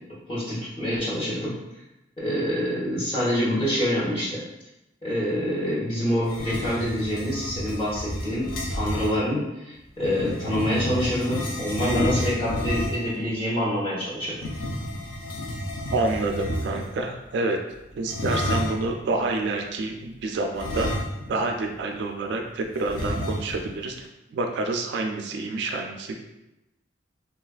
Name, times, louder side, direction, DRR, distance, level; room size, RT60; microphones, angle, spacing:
voice 1, 0.3-1.6 2.2-4.4 5.0-14.4, equal, 25° left, -9 dB, 0.9 m, -26 dB
sound 1, 6.2-9.2 10.0-13.2 14.3-17.0 18.1-18.9 20.5-21.5 21.8-21.9 22.9-23.7, equal, 90° left, 0.5 m, -30 dB
voice 2, 15.9-17.6 17.9-20.9 21.3-26.2, right 2 dB, 65° right, 3 dB, 0.3 m, -28 dB
3.3 x 2.4 x 2.3 m, 0.93 s
head